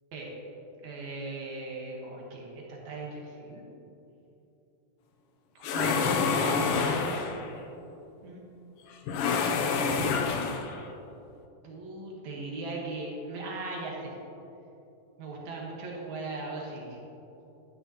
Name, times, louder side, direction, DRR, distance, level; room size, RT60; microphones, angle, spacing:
voice 1, 0.8-3.6 5.6-7.2 8.2-8.4 9.9-10.2 11.6-14.2 15.2-17.0, right 3 dB, 75° right, -2 dB, 2.7 m, -38 dB
sound 1, 5.6-7.5 9.1-10.8, left 5 dB, 80° left, 1.3 m, -27 dB
12.5 x 10.0 x 2.9 m, 2.9 s
omnidirectional pair, 3.4 m